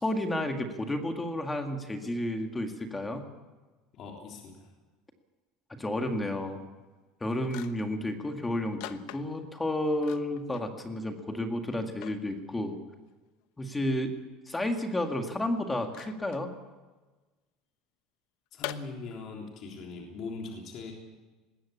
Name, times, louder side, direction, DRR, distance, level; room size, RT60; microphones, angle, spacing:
voice 1, 0.0-3.3 5.7-6.6 7.2-12.8 13.6-14.2 14.5-16.5, left 1 dB, 10° left, 5 dB, 1.9 m, -31 dB
voice 2, 3.9-4.7 18.5-20.9, left 4 dB, 45° left, 0 dB, 3.6 m, -41 dB
sound 1, 7.0-7.1 7.4-8.0 8.8-9.6 10.0-10.7 11.1-11.2 11.7-12.2 13.6-13.7 15.8-16.4 18.6-18.7, left 16 dB, 70° left, 1.0 m, -42 dB
20.5 x 16.0 x 8.6 m, 1.2 s
cardioid pair, 150°, 0 cm